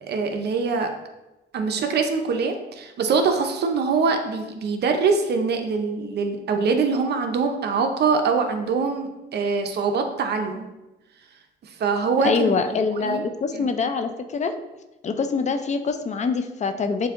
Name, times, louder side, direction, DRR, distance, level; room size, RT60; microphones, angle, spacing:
voice 1, 0.0-0.9 1.5-10.7 11.6-13.3 13.5-13.7, right 4 dB, 55° right, 5 dB, 0.6 m, -24 dB
voice 2, 12.2-14.5 15.0-17.1, left 5 dB, 35° left, 7 dB, 0.4 m, -24 dB
6.8 x 2.6 x 2.5 m, 1.0 s
cardioid pair, 90°, 20 cm